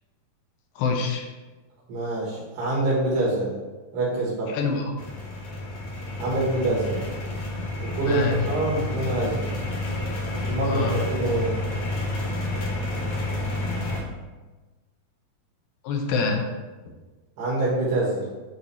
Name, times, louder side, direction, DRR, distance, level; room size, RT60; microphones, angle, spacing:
voice 1, 0.8-1.3 4.5-4.9 8.1-8.3 10.6-10.9 15.8-16.5, left 5 dB, 75° left, 2 dB, 2.2 m, -25 dB
voice 2, 1.9-3.6 3.9-4.5 6.2-7.0 7.9-9.5 10.4-11.6 17.4-18.2, right 2 dB, 80° right, -7 dB, 3.6 m, -25 dB
sound 1, 5.0-14.0, left 2 dB, 60° left, 2.7 m, -30 dB
8.5 x 3.3 x 4.1 m, 1.2 s
omnidirectional pair, 4.5 m